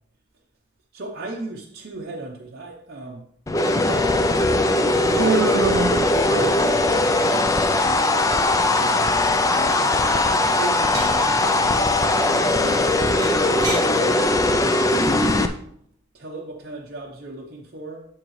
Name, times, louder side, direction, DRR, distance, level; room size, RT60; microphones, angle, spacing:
voice 1, 0.9-3.3 3.7-4.1 4.6-5.7 6.1-8.1 8.8-9.2 9.7-11.9 12.3-15.6 16.1-18.0, right 2 dB, 50° right, -2 dB, 0.8 m, -37 dB
sound 1, 3.5-15.5, left 2 dB, 15° left, 0.3 m, -20 dB
Human voice, 5.2-6.9, right 4 dB, 65° right, 0.4 m, -25 dB
sound 2, 10.9-11.6 13.2-13.9 15.4-15.7, right 2 dB, 20° right, 1.9 m, -31 dB
7.4 x 7.3 x 3.2 m, 0.66 s
head